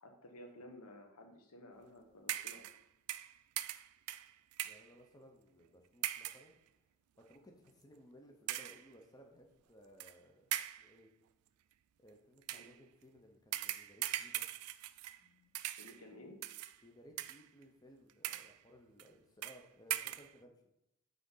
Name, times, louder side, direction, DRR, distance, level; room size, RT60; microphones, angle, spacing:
voice 1, 0.0-2.7 12.5-12.7 15.2-15.5 15.8-16.4, left 1 dB, 80° left, 4 dB, 1.1 m, -55 dB
sound 1, 2.3-2.8 3.1-4.9 6.0-6.5 7.2-7.3 8.5-8.9 10.0-10.1 10.5-10.9 12.4-12.7 13.5-15.3 15.5-16.0 16.4-16.8 17.2-17.6 18.1-18.6 19.0-19.1 19.4-19.6 19.9-20.3, right 14 dB, 80° right, 0.3 m, -40 dB
voice 2, 4.6-6.6 7.2-11.1 12.0-14.5 16.8-20.6, equal, 15° left, 2 dB, 0.7 m, -60 dB
5.8 x 3.8 x 5.5 m, 0.84 s
head